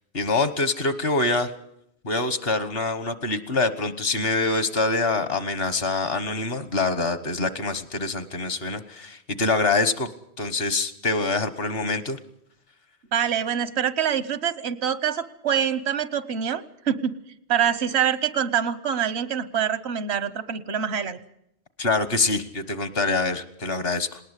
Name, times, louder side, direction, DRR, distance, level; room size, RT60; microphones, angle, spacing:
voice 1, 0.1-1.5 2.0-10.1 10.4-12.2 21.8-24.2, left 3 dB, 65° left, 12 dB, 1.5 m, -25 dB
voice 2, 13.1-17.2 17.5-21.2, right 8 dB, 85° right, 15 dB, 1.3 m, -25 dB
19.5 x 19.0 x 8.2 m, 0.76 s
omnidirectional pair, 1.1 m